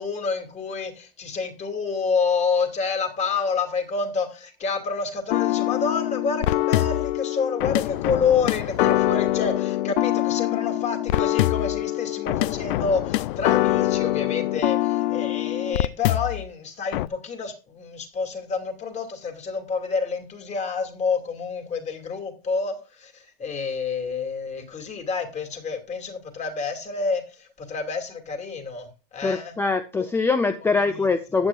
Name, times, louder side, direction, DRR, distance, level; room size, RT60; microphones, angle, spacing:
voice 1, 0.0-29.5 30.7-31.1 31.3-31.4, left 5 dB, 25° left, 6 dB, 2.5 m, -28 dB
sound 1, 5.3-16.5 16.9-17.1, left 16 dB, 60° left, 0.5 m, -24 dB
voice 2, 29.2-31.5, left 4 dB, 10° left, 11 dB, 0.5 m, -23 dB
15.0 x 9.2 x 2.4 m, 0.32 s
hypercardioid pair, 130°, 29 cm